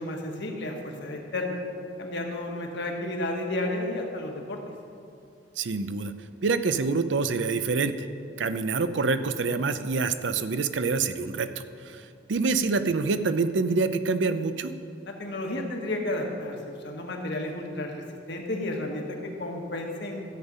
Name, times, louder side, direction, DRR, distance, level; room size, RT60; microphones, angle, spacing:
voice 1, 0.0-1.6 2.0-4.6 15.0-16.6 16.8-20.2, left 1 dB, 65° left, 1 dB, 1.5 m, -32 dB
voice 2, 5.6-6.1 6.4-8.1 8.4-14.7, right 4 dB, 70° right, 11 dB, 0.6 m, -26 dB
13.5 x 8.0 x 5.5 m, 2.4 s
head